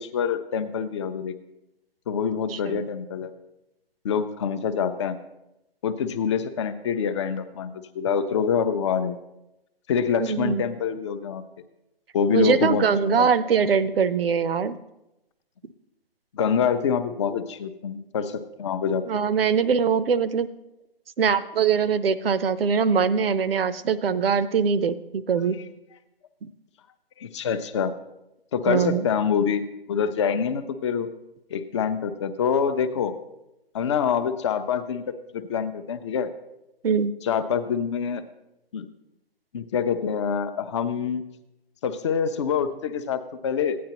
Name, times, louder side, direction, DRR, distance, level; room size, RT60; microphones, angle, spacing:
voice 1, 0.0-1.3 2.1-3.3 4.0-5.2 5.8-9.2 9.9-11.4 12.1-13.3 16.3-19.0 27.2-27.9 28.5-29.6 29.9-31.1 31.5-33.1 33.7-35.0 35.3-36.3 37.2-38.2 38.7-38.9 39.5-41.2 41.8-43.8, left 7 dB, 30° left, 10 dB, 0.5 m, -25 dB
voice 2, 2.5-2.8 10.2-10.6 12.3-14.8 19.1-20.5 21.2-25.6 28.7-29.1 36.8-37.1, right 6 dB, 65° right, 15 dB, 0.7 m, -22 dB
14.5 x 9.4 x 2.9 m, 0.91 s
hypercardioid pair, 145°, 31 cm